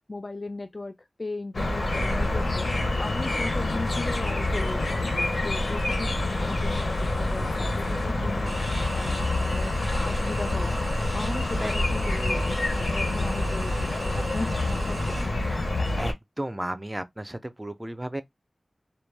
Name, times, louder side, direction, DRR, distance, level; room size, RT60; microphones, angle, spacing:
voice 1, 0.1-2.7 3.0-8.5 8.9-9.7 10.0-10.8 11.1-15.4, left 2 dB, 50° left, 0.3 m, -37 dB
Distant city sound at night, 1.5-16.1, left 2 dB, 75° left, 0.7 m, -27 dB
sound 1, 8.5-15.2, right 3 dB, 90° right, 0.4 m, -41 dB
voice 2, 11.6-12.0 15.1-15.7 16.0-18.2, right 1 dB, 20° right, 0.4 m, -35 dB
2.2 x 2.0 x 3.2 m
wide cardioid pair, 50°, 0 cm